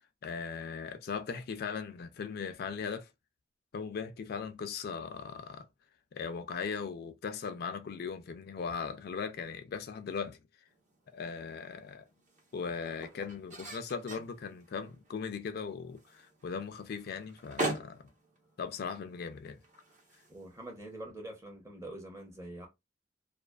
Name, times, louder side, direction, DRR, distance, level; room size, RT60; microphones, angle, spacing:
voice 1, 0.2-3.1 3.7-5.7 6.1-10.4 11.1-12.1 12.5-18.0 18.6-19.6, left 5 dB, 60° left, 0.4 m, -38 dB
sound 1, 10.7-21.0, right 2 dB, 45° right, 0.9 m, -44 dB
voice 2, 20.3-22.7, right 1 dB, 15° right, 0.7 m, -45 dB
2.4 x 2.4 x 2.2 m
head